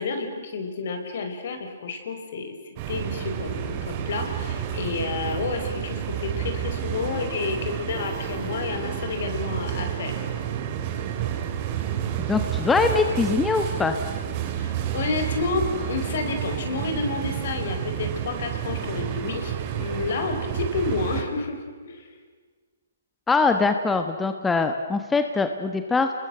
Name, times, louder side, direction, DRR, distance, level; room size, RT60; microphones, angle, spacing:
voice 1, 0.0-2.5 2.9-10.2 14.5-22.1, left 4 dB, 60° left, 6 dB, 5.3 m, -30 dB
sound 1, 2.8-21.2, right 9 dB, 35° right, 3.7 m, -30 dB
voice 2, 12.2-14.0 23.3-26.1, left 4 dB, 10° left, 7 dB, 1.2 m, -22 dB
29.5 x 21.0 x 7.9 m, 1.5 s
hypercardioid pair, 140°, 0 cm